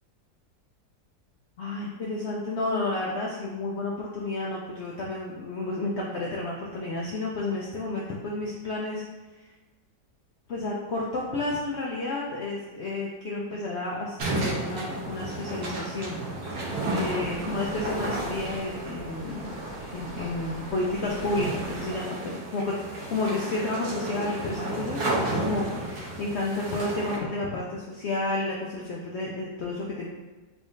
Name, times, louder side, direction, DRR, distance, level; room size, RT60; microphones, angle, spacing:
voice 1, 1.6-9.0 9.4-9.5 10.5-16.2 16.9-19.6 19.9-22.8 23.1-30.1, left 2 dB, 90° left, -4 dB, 0.5 m, -31 dB
sound 1, 14.2-27.2, right 2 dB, 75° right, 1.4 m, -33 dB
sound 2, 16.9-21.9, right 1 dB, 35° right, 0.4 m, -44 dB
3.5 x 3.5 x 2.6 m, 1.2 s
omnidirectional pair, 1.7 m